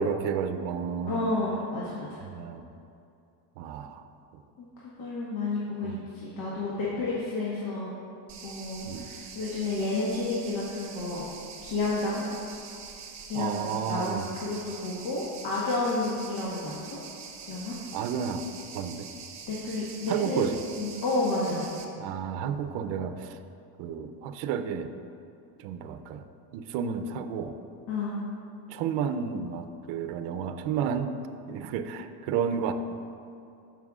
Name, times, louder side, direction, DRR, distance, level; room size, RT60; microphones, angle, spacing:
voice 1, 0.0-1.2 2.2-2.7 3.6-4.1 4.3-4.4 5.8-6.0 8.9-9.1 13.3-14.3 17.9-18.4 18.7-19.1 20.1-20.6 22.0-23.4 23.8-24.9 25.6-26.2 26.5-27.5 28.7-31.1 31.5-32.7, right 7 dB, 65° right, 9 dB, 0.7 m, -31 dB
voice 2, 1.1-2.2 4.6-7.9 8.4-11.3 11.6-12.3 13.3-17.0 17.5-17.8 19.5-20.4 20.7-21.7 27.9-28.2, left 2 dB, 55° left, -7 dB, 1.6 m, -31 dB
sound 1, 8.3-21.8, right 6 dB, 35° right, 1.0 m, -44 dB
13.5 x 5.8 x 2.4 m, 2.6 s
supercardioid pair, 115°, 48 cm